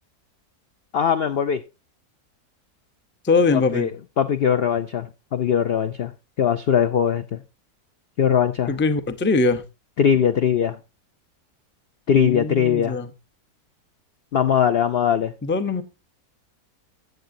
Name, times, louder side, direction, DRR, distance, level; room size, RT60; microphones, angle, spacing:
voice 1, 0.9-1.6 3.5-3.9 4.2-6.1 6.4-7.4 8.2-8.7 10.0-10.8 12.1-13.0 14.3-15.3, left 8 dB, 65° left, 9 dB, 0.6 m, -20 dB
voice 2, 3.2-3.9 8.7-9.6 12.1-13.1 15.4-15.8, left 3 dB, 15° left, 9 dB, 0.4 m, -21 dB
15.0 x 7.9 x 2.6 m, 0.28 s
omnidirectional pair, 1.7 m